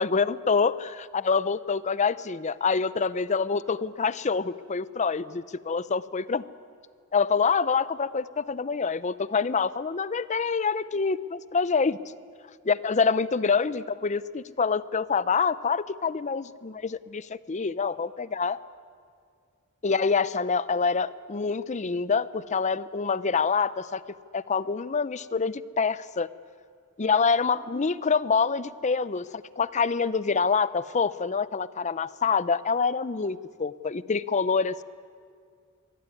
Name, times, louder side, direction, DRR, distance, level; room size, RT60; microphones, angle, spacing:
voice 1, 0.0-6.4 7.1-12.0 12.6-18.6 19.8-24.0 24.3-26.3 27.0-34.8, left 5 dB, 35° left, 17 dB, 0.6 m, -26 dB
24.0 x 17.5 x 9.7 m, 2.1 s
head